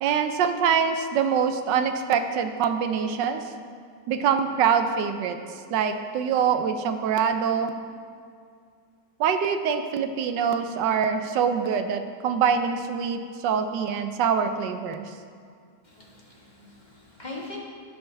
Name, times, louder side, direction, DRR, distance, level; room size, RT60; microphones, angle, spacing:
voice 1, 0.0-3.4 4.1-5.4 5.7-7.7 9.2-15.1, right 7 dB, 80° right, 8 dB, 1.3 m, -24 dB
voice 2, 15.8-17.6, left 2 dB, 25° left, -4 dB, 1.4 m, -41 dB
16.0 x 5.8 x 3.3 m, 2.2 s
omnidirectional pair, 2.0 m